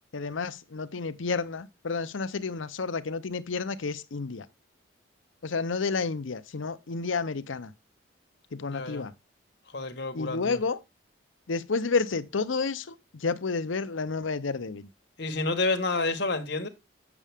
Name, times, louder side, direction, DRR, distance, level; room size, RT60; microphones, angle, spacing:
voice 1, 0.1-4.4 5.4-7.7 8.5-9.1 10.1-10.8 11.5-12.8 13.2-14.8, left 4 dB, 90° left, 0.7 m, -30 dB
voice 2, 8.6-9.1 9.7-10.6 15.2-16.7, left 3 dB, 60° left, 1.4 m, -29 dB
8.3 x 7.0 x 3.5 m
head